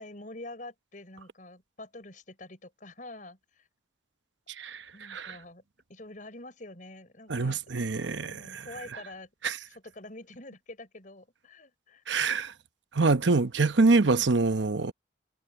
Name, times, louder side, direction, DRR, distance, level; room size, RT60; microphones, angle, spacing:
voice 1, 0.0-3.7 4.9-5.6 5.9-7.6 8.2-9.3 9.7-12.0, left 2 dB, 45° left, 5.5 m, -46 dB
voice 2, 7.3-8.6 9.4-9.6 12.1-12.5 12.9-14.9, right 3 dB, 75° right, 0.9 m, -25 dB
head